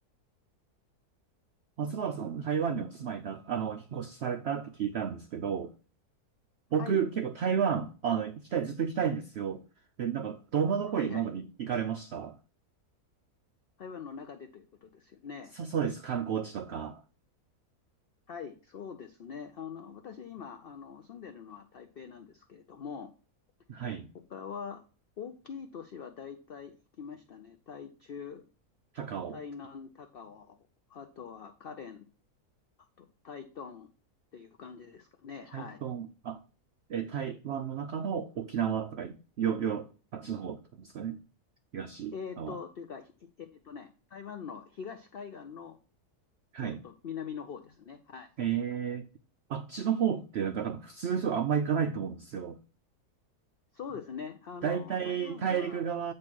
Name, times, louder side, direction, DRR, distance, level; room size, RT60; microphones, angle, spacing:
voice 1, 1.8-5.7 6.7-9.6 10.0-12.4 15.5-17.0 23.7-24.1 28.9-29.4 35.5-36.4 36.9-41.2 41.7-42.6 46.5-46.8 48.4-49.1 49.5-52.6 54.6-56.1, right 7 dB, 90° right, 0.5 m, -32 dB
voice 2, 10.9-11.3 13.8-15.5 18.3-23.1 23.7-24.8 25.2-28.4 29.3-30.6 30.9-32.0 33.0-33.9 34.3-35.8 42.1-45.8 46.6-48.3 53.7-55.8, left 6 dB, 70° left, 0.5 m, -43 dB
8.6 x 3.2 x 6.0 m
omnidirectional pair, 1.7 m